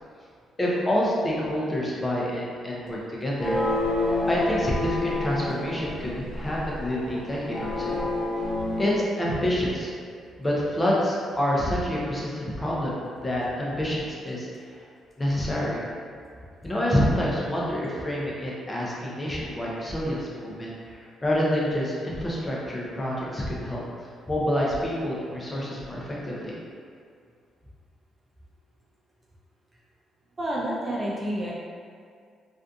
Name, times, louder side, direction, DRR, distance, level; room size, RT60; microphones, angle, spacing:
voice 1, 0.6-3.6 4.3-8.0 8.8-9.9 10.4-14.5 14.7-14.8 15.2-15.8 16.6-23.8 24.3-26.6, equal, 20° left, -5 dB, 0.6 m, -27 dB
sound 1, 3.4-8.9, left 2 dB, 45° left, 1.1 m, -29 dB
voice 2, 30.4-31.5, right 1 dB, 25° right, -5 dB, 0.4 m, -29 dB
2.5 x 2.4 x 2.3 m, 2.2 s
cardioid pair, 90°, 0 cm